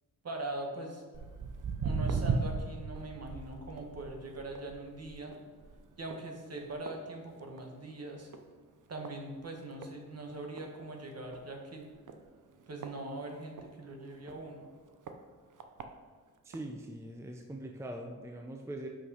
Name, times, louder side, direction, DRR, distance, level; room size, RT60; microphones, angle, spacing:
voice 1, 0.2-1.0 1.8-5.3 6.0-8.3 8.9-11.9 12.7-14.7, right 2 dB, 50° right, 2 dB, 1.3 m, -42 dB
Walk footsteps, 1.1-7.8 8.1-8.5 9.0-9.1 9.8-9.9 10.3-10.4 10.6-10.7 11.2-11.4 12.1-13.7 14.3-14.4 15.1-15.2 15.6-15.9 16.5-16.6, right 4 dB, 65° right, 0.7 m, -37 dB
voice 2, 16.4-18.9, right 1 dB, 10° right, 3 dB, 0.5 m, -42 dB
5.8 x 5.7 x 5.5 m, 1.4 s
wide cardioid pair, 130°, 33 cm